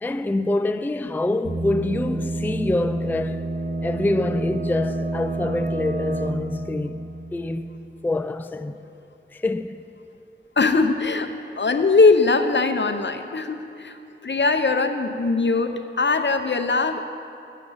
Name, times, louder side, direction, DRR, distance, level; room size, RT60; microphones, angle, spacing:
voice 1, 0.0-3.5 3.8-7.7 8.0-8.8 9.3-9.8, left 2 dB, 10° left, 0.3 m, -26 dB
sound 1, 1.4-8.0, right 2 dB, 65° right, 1.0 m, -29 dB
voice 2, 10.6-11.3 11.6-14.0 14.2-17.0, left 3 dB, 65° left, 0.6 m, -20 dB
10.0 x 7.3 x 7.8 m
wide cardioid pair, 55°, 20 cm